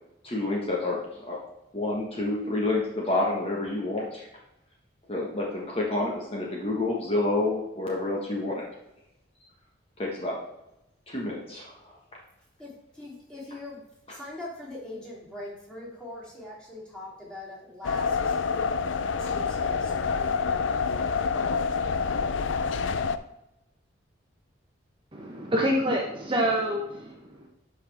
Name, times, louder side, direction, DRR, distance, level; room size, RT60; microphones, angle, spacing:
voice 1, 0.2-1.4 1.7-4.3 5.1-8.6 10.0-10.3 11.1-11.7, left 2 dB, 30° left, -2 dB, 1.4 m, -28 dB
voice 2, 12.6-13.8 14.1-18.3 19.2-21.3, left 2 dB, 5° left, -7 dB, 3.2 m, -42 dB
sound 1, 17.8-23.2, left 5 dB, 85° left, 0.5 m, -27 dB
voice 3, 25.2-27.5, equal, 25° right, -1 dB, 1.0 m, -27 dB
11.5 x 5.3 x 3.5 m, 0.88 s
head